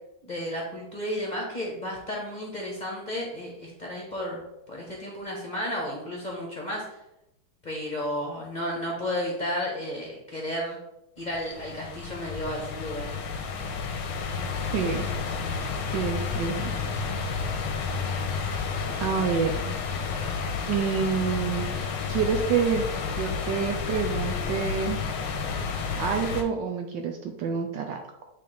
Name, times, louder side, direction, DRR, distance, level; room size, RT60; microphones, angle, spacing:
voice 1, 0.2-7.0 7.6-10.8 11.2-13.1 18.9-19.1, equal, 25° left, -2 dB, 1.1 m, -33 dB
sound 1, 11.3-26.4, left 5 dB, 90° left, 1.7 m, -31 dB
voice 2, 14.7-15.1 15.9-16.8 19.0-19.7 20.7-21.7 22.1-22.8 23.1-25.0 26.0-28.0, right 6 dB, 70° right, 4 dB, 1.2 m, -27 dB
8.5 x 3.9 x 3.4 m, 0.87 s
omnidirectional pair, 2.3 m